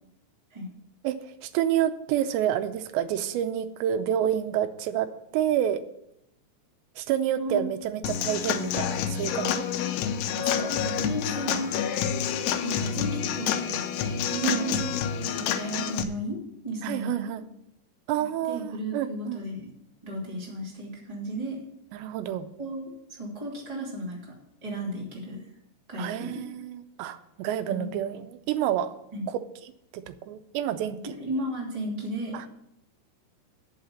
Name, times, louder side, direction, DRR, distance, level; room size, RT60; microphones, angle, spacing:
voice 1, 1.0-5.1 5.3-5.8 7.0-9.6 10.4-10.7 14.4-14.7 16.8-17.4 18.1-19.5 21.9-22.5 26.0-29.0 29.3-29.4 29.9-31.2 32.3-32.5, right 10 dB, 90° right, 10 dB, 2.9 m, -29 dB
voice 2, 7.4-7.7 10.7-11.8 12.6-17.3 18.5-19.7 20.0-21.6 22.6-24.3 24.6-25.5 25.9-26.4 27.6-27.9 29.1-29.3 31.1-32.4, right 1 dB, 10° right, -4 dB, 2.1 m, -34 dB
Human voice / Acoustic guitar / Drum, 8.0-16.0, left 8 dB, 80° left, 2.5 m, -28 dB
9.6 x 5.7 x 8.3 m, 0.80 s
omnidirectional pair, 5.0 m